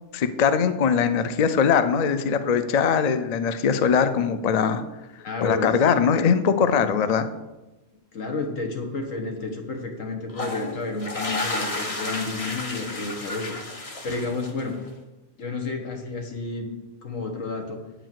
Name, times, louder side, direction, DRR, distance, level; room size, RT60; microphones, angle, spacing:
voice 1, 0.1-4.8 5.4-7.3, left 6 dB, 50° left, 10 dB, 0.5 m, -21 dB
voice 2, 5.2-5.8 8.1-13.6 14.0-14.8 15.4-16.7 17.0-17.8, left 3 dB, 85° left, 3 dB, 1.8 m, -31 dB
sound 1, 10.3-14.8, left 2 dB, 30° left, 0.8 m, -32 dB
8.9 x 5.0 x 7.6 m, 1.1 s
omnidirectional pair, 1.3 m